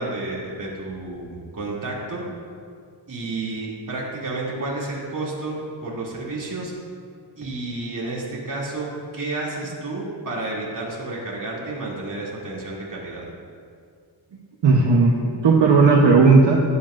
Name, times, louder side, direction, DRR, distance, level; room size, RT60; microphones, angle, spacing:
voice 1, 0.0-2.2 3.1-6.7 7.4-13.2, right 2 dB, 40° right, -5 dB, 2.7 m, -31 dB
voice 2, 14.6-16.6, right 4 dB, 65° right, -1 dB, 1.0 m, -15 dB
17.0 x 8.4 x 2.5 m, 2.2 s
wide cardioid pair, 140°, 46 cm